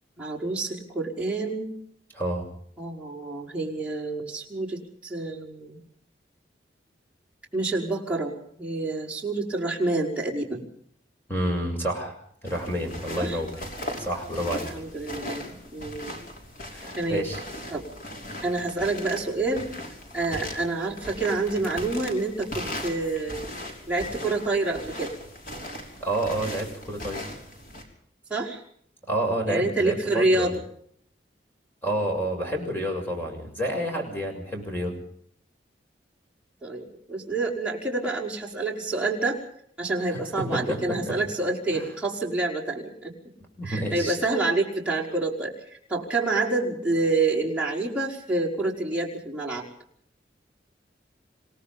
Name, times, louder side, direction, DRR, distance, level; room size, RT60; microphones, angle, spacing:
voice 1, 0.2-1.7 2.8-5.8 7.5-10.6 13.2-13.4 14.4-16.2 17.0-17.3 17.7-17.9 18.4-19.7 20.1-23.4 23.9-25.1 28.3-28.6 29.5-30.5 36.6-39.4 39.8-43.1 43.6-45.5 45.9-49.7, right 2 dB, 5° right, -3 dB, 5.4 m, -28 dB
voice 2, 2.1-2.5 11.3-12.1 12.4-13.7 14.0-14.7 16.7-17.4 26.0-27.2 29.1-30.5 31.8-35.0 40.1-41.2 41.7-41.8 43.6-44.2, right 1 dB, 10° left, 2 dB, 7.0 m, -29 dB
sound 1, 12.5-27.8, left 1 dB, 50° left, 5.8 m, -38 dB
27.5 x 18.5 x 5.4 m, 0.64 s
head